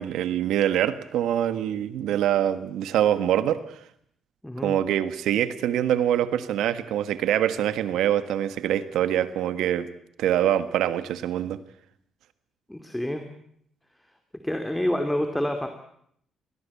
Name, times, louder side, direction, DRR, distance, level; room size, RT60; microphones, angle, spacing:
voice 1, 0.0-3.6 4.6-9.9 10.2-11.6, right 11 dB, 85° right, 12 dB, 1.5 m, -24 dB
voice 2, 4.4-4.7 12.7-13.2 14.4-15.7, left 1 dB, 5° left, 6 dB, 2.5 m, -27 dB
23.0 x 17.5 x 8.5 m, 0.70 s
cardioid pair, 90°, 0 cm